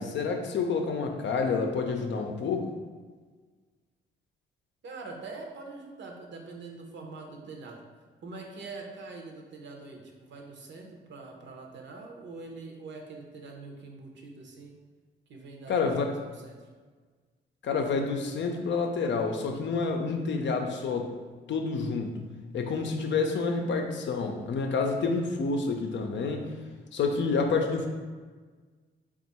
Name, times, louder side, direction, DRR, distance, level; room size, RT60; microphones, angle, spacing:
voice 1, 0.0-2.7 15.7-16.1 17.6-21.1 21.5-22.2 22.5-26.5 26.9-27.9, left 4 dB, 65° left, 4 dB, 0.5 m, -28 dB
voice 2, 4.8-7.8 8.2-14.7 15.3-16.7, right 3 dB, 65° right, 1 dB, 0.8 m, -44 dB
3.5 x 2.4 x 4.1 m, 1.4 s
supercardioid pair, 55°, 21 cm